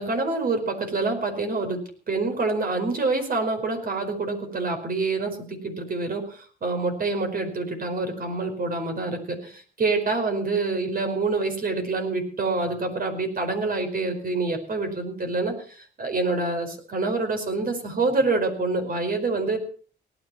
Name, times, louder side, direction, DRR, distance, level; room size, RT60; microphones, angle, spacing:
voice 1, 0.0-19.6, right 3 dB, 45° right, 5 dB, 4.8 m, -26 dB
18.0 x 10.5 x 5.9 m, 0.44 s
cardioid pair, 90°, 20 cm